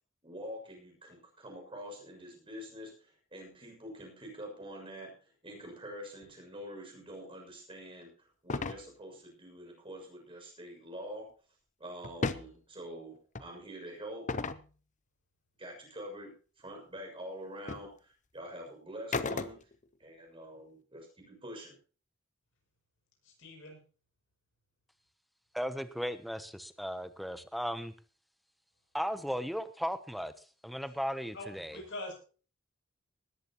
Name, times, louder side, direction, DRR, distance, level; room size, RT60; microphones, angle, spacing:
voice 1, 0.2-11.3 11.8-14.3 15.6-19.6 20.0-21.7, equal, 25° right, 2 dB, 6.5 m, -46 dB
sound 1, 8.5-8.8 12.0-12.5 13.3-13.5 14.3-14.6 17.0-17.1 17.7-17.9 19.1-19.8, left 3 dB, 35° left, 0.8 m, -34 dB
voice 2, 23.2-23.8 31.3-32.1, left 2 dB, 65° left, 1 dB, 7.3 m, -43 dB
voice 3, 25.5-27.9 28.9-31.8, equal, ahead, 11 dB, 0.8 m, -36 dB
19.5 x 14.0 x 3.0 m, 0.38 s
head